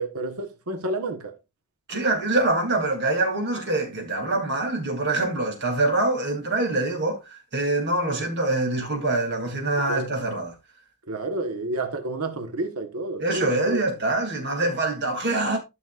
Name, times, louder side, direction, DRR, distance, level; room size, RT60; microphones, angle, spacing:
voice 1, 0.0-1.3 9.7-10.1 11.1-13.8, right 2 dB, 75° right, 1.4 m, -30 dB
voice 2, 1.9-10.5 13.2-15.6, right 2 dB, 50° right, 3.0 m, -25 dB
13.0 x 6.3 x 2.5 m
head